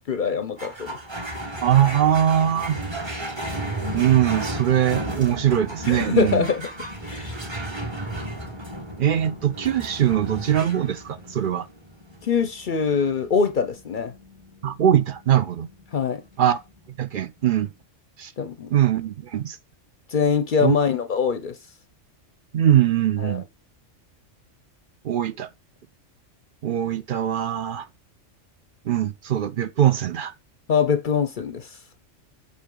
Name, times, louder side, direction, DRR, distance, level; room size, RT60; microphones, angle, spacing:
voice 1, 0.1-1.0 5.8-6.7 7.0-7.3 12.2-14.1 15.9-16.2 18.4-18.7 20.1-21.6 23.2-23.4 30.7-31.8, left 6 dB, 50° left, 0.6 m, -23 dB
sound 1, 0.6-17.3, right 1 dB, 25° right, 1.1 m, -34 dB
voice 2, 1.6-2.8 3.9-6.5 9.0-11.7 14.6-15.7 16.4-16.6 17.0-17.7 18.2-18.3 18.7-19.6 20.6-20.7 22.5-23.4 25.0-25.5 26.6-27.9 28.9-30.3, right 10 dB, 55° right, 0.6 m, -21 dB
8.5 x 4.3 x 3.8 m
omnidirectional pair, 1.3 m